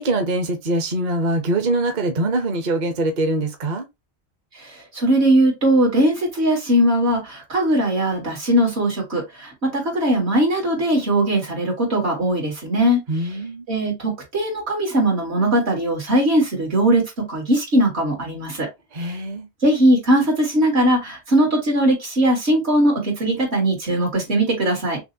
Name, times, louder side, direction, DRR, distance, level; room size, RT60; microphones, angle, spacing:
voice 1, 0.0-3.9 13.1-13.7 18.9-19.5, right 2 dB, 45° right, 0.8 m, -23 dB
voice 2, 4.6-13.0 13.7-18.7 19.0-19.2 19.6-25.0, right 1 dB, 80° right, 2.2 m, -20 dB
6.0 x 2.0 x 2.6 m
omnidirectional pair, 1.1 m